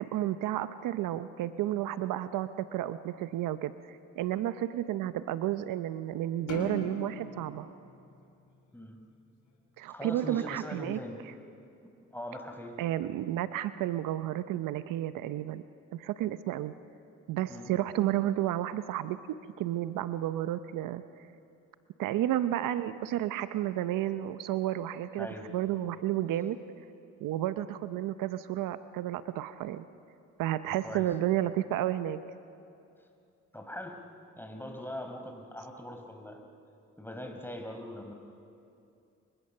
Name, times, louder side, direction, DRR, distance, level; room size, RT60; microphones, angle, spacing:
voice 1, 0.0-7.7 9.8-11.0 12.8-15.6 15.9-16.7 17.3-19.2 19.6-21.0 22.0-26.6 27.2-29.8 30.4-32.2, right 13 dB, 85° right, 13 dB, 0.7 m, -32 dB
sound 1, 6.5-9.0, left 3 dB, 70° left, 3.8 m, -41 dB
voice 2, 9.9-11.2 12.1-12.8 17.5-17.7 25.2-25.5 30.8-31.1 33.5-34.0 34.4-36.4 37.0-38.1, left 1 dB, 5° left, 4 dB, 4.9 m, -41 dB
29.5 x 24.0 x 6.6 m, 2.6 s
supercardioid pair, 50°, 32 cm